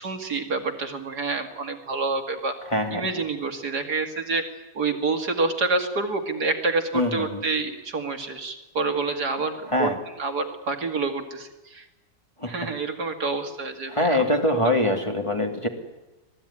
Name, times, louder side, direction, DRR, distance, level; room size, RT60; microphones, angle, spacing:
voice 1, 0.0-2.5 2.9-4.4 4.7-11.9 12.5-14.4 14.6-14.7, right 3 dB, 55° right, 6 dB, 2.6 m, -28 dB
voice 2, 2.7-3.1 6.9-7.4 9.7-10.0 12.4-12.5 13.9-15.7, left 1 dB, 15° left, 3 dB, 2.6 m, -23 dB
26.0 x 18.0 x 9.9 m, 1.1 s
omnidirectional pair, 2.0 m